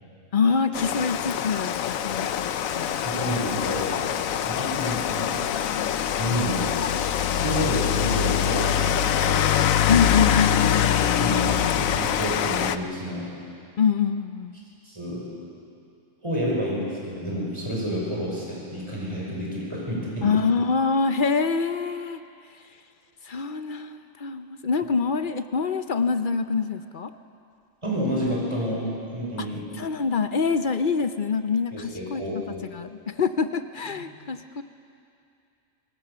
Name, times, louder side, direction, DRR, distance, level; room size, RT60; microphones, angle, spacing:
voice 1, 0.3-2.3 2.7-2.9 4.5-4.9 7.6-7.7 9.9-11.2 13.8-14.6 20.2-22.2 23.2-27.1 29.7-32.2 32.6-34.6, left 5 dB, 50° left, 10 dB, 0.7 m, -25 dB
Rain, 0.7-12.8, left 9 dB, 80° left, 1.1 m, -24 dB
voice 2, 3.0-3.9 4.4-5.3 6.2-6.6 7.3-9.4 11.1-13.3 14.8-15.2 16.2-20.3 27.8-28.8 29.1-29.6 31.7-32.6, equal, 20° right, -5 dB, 5.8 m, -29 dB
26.5 x 18.0 x 6.8 m, 2.6 s
omnidirectional pair, 1.4 m